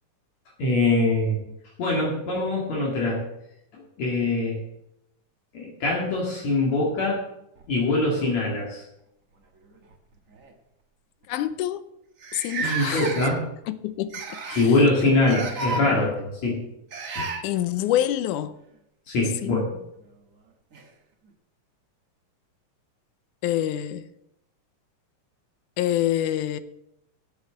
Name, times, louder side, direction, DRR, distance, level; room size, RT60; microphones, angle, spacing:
voice 1, 0.6-1.4 1.8-3.2 4.0-4.6 5.5-7.2 7.7-8.8 12.6-13.4 14.6-16.6 17.2-17.3 19.1-19.7, left 2 dB, 60° left, 3.2 m, -23 dB
sound 1, 7.6-8.7 9.8-9.9 10.3-10.5 11.2-11.3 11.5-11.6 12.2-13.6 14.1-14.7 15.2-15.8 16.9-17.4 19.6-19.7 20.7-20.8, right 4 dB, 70° right, 0.7 m, -32 dB
voice 2, 11.3-11.8 12.3-13.1 13.7-14.6 15.8-16.1 17.4-18.5 19.4-19.7 23.4-24.0 25.8-26.6, left 12 dB, 90° left, 2.1 m, -26 dB
8.3 x 6.8 x 8.1 m
omnidirectional pair, 3.5 m